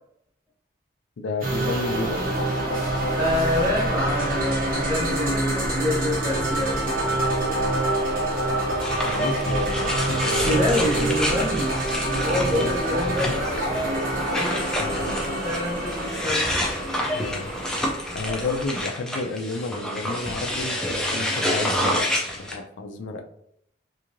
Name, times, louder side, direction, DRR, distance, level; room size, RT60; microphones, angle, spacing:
voice 1, 1.2-2.2 9.1-11.5 12.4-12.8 13.3-13.4 14.8-15.2 17.1-17.6 18.1-22.1 22.4-23.2, left 3 dB, 80° left, 5 dB, 0.4 m, -31 dB
sound 1, 1.4-18.7, right 1 dB, 45° right, 1.1 m, -26 dB
voice 2, 3.2-7.0 10.3-11.8 12.0-14.0 14.3-16.6, left 1 dB, 20° right, -7 dB, 1.1 m, -27 dB
sound 2, 8.8-22.5, left 1 dB, 5° left, 0.4 m, -29 dB
2.9 x 2.6 x 2.5 m, 0.72 s
head